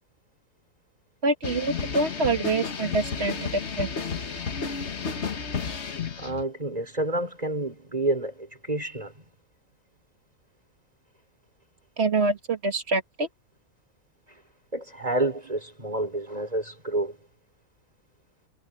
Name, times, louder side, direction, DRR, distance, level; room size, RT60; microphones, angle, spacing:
voice 1, 1.2-3.9 12.0-13.3, right 3 dB, 40° right, 2.0 m, -26 dB
sound 1, 1.4-6.4, left 5 dB, 45° left, 1.5 m, -32 dB
voice 2, 6.2-9.1 14.7-17.2, right 2 dB, 25° right, 3.5 m, -29 dB
omnidirectional pair, 1.7 m